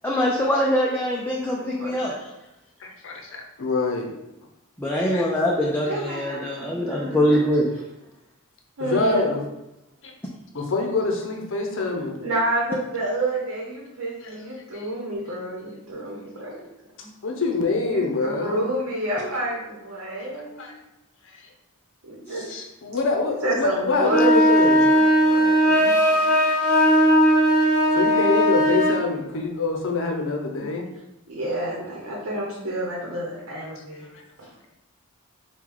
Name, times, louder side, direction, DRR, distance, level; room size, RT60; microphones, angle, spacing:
voice 1, 0.0-2.1 4.8-7.7 22.3-22.5, equal, 10° left, -3 dB, 0.4 m, -23 dB
voice 2, 1.6-2.2 5.9-7.5 8.8-9.4 12.2-16.6 17.9-20.8 22.0-22.4 23.2-26.3 30.6-30.7 31.3-34.1 34.4-34.5, right 1 dB, 65° right, -4 dB, 0.9 m, -30 dB
voice 3, 2.8-4.1 5.1-5.2 5.6-5.7 6.0-6.1 8.8-9.4 10.0-10.1 10.5-12.2 14.2-14.9 16.4-16.5 17.2-18.7 19.2-19.3 20.2-20.8 21.2-21.5 22.5-24.8 27.9-30.9 33.6-34.2, left 3 dB, 60° left, 2 dB, 0.7 m, -26 dB
sound 1, 24.0-29.0, equal, 35° left, 1.0 m, -18 dB
4.5 x 2.3 x 3.7 m, 0.90 s
head